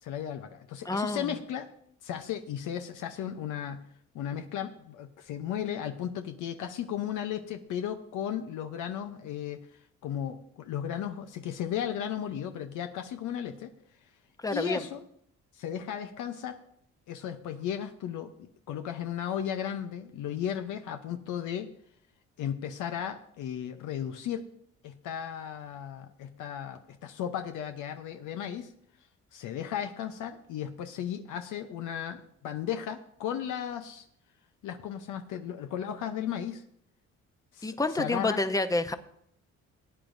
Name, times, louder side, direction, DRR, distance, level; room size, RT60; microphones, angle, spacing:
voice 1, 0.0-1.7 2.0-3.8 4.1-9.7 10.0-13.7 14.5-15.0 15.5-16.6 17.1-21.7 22.4-24.4 24.8-28.7 29.3-34.0 34.6-36.6 37.5-38.4, left 9 dB, 85° left, 6 dB, 0.8 m, -35 dB
voice 2, 0.8-1.4 14.4-14.9 37.6-39.0, left 2 dB, 10° left, 10 dB, 0.7 m, -28 dB
18.5 x 9.1 x 2.7 m, 0.67 s
cardioid pair, 90°, 30 cm